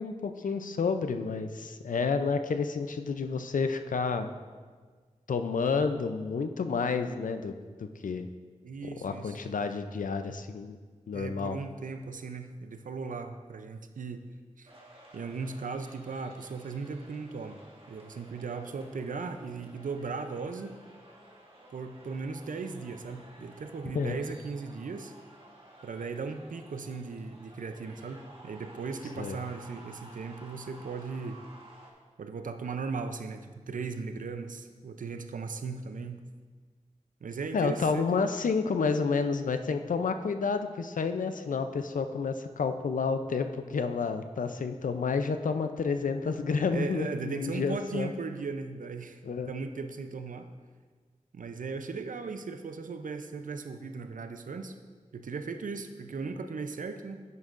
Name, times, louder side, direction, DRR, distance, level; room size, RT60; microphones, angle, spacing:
voice 1, 0.0-4.3 5.3-7.5 7.8-8.3 9.0-10.8 11.1-11.6 23.9-24.2 29.2-29.4 37.5-48.1 49.2-49.5, left 5 dB, 90° left, 8 dB, 0.5 m, -30 dB
voice 2, 8.6-9.4 11.1-14.3 14.6-14.7 15.1-17.6 17.9-20.8 21.7-25.1 25.8-31.4 32.2-36.2 37.2-38.3 46.7-49.2 49.5-50.5 51.3-54.8 55.1-57.2, right 4 dB, 85° right, 8 dB, 0.5 m, -37 dB
sound 1, 14.6-31.9, right 1 dB, 40° right, 2.0 m, -54 dB
9.9 x 9.5 x 2.5 m, 1.5 s
cardioid pair, 40°, 13 cm